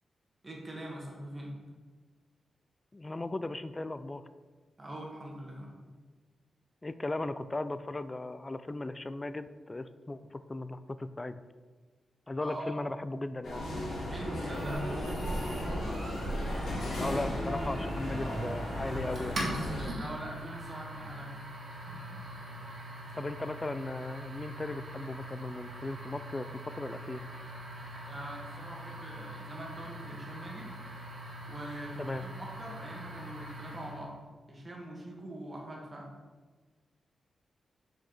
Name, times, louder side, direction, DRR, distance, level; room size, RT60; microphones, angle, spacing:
voice 1, 0.4-1.5 4.8-5.8 12.4-12.7 14.1-16.0 19.9-21.4 28.0-30.7 31.5-34.1 34.5-36.1, right 1 dB, 30° right, -1 dB, 1.7 m, -43 dB
voice 2, 2.9-4.2 6.8-11.4 12.3-13.6 16.9-19.4 23.1-26.5 26.7-27.2 32.0-32.2, left 2 dB, 25° left, 12 dB, 0.4 m, -37 dB
sound 1, 13.4-19.9, equal, 85° left, 1.6 m, -35 dB
sound 2, 14.5-34.1, right 1 dB, 65° right, 1.9 m, -42 dB
6.0 x 5.0 x 4.3 m, 1.4 s
cardioid pair, 75°, 0 cm